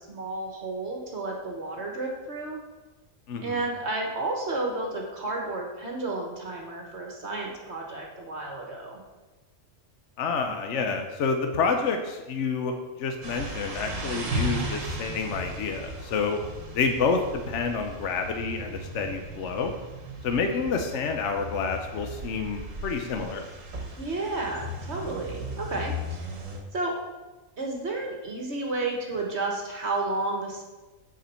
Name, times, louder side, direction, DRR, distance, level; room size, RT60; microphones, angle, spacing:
voice 1, 0.0-2.6 3.4-9.0 24.0-26.4 26.7-27.0 27.6-30.6, right 2 dB, 55° right, 0 dB, 1.7 m, -32 dB
voice 2, 3.3-3.6 10.2-16.4 16.7-17.2 17.5-19.7 20.2-23.5, left 5 dB, 65° left, 5 dB, 1.1 m, -28 dB
sound 1, 13.2-26.6, right 1 dB, 75° right, 1.7 m, -36 dB
7.4 x 5.1 x 6.9 m, 1.1 s
omnidirectional pair, 1.3 m